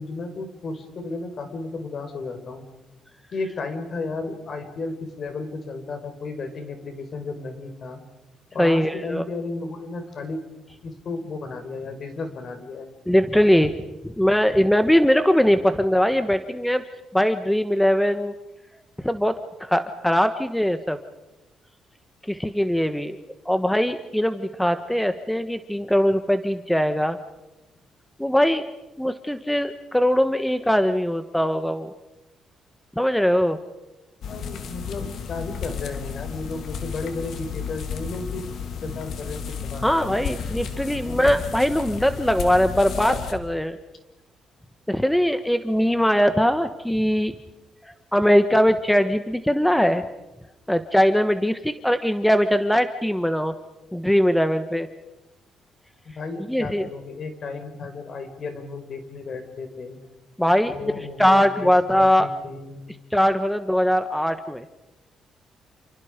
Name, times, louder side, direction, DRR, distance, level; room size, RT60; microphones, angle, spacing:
voice 1, 0.0-2.6 3.3-8.0 8.5-10.4 10.8-12.9 34.3-38.4 38.7-40.2 41.0-41.4 56.1-60.0 60.6-62.8, left 3 dB, 50° left, 7 dB, 5.1 m, -34 dB
voice 2, 8.6-9.2 13.1-13.7 14.0-16.8 17.1-18.3 19.0-21.0 22.3-23.2 23.4-27.2 28.2-28.6 29.0-31.9 33.0-33.6 39.8-43.8 44.9-47.3 47.8-50.0 50.7-53.5 53.9-54.9 56.5-56.9 60.4-60.8 61.2-62.3 63.1-64.6, equal, 5° left, 9 dB, 1.3 m, -21 dB
sound 1, 34.2-43.3, left 6 dB, 65° left, 3.1 m, -33 dB
29.5 x 28.0 x 5.2 m, 1.0 s
cardioid pair, 90°, 0 cm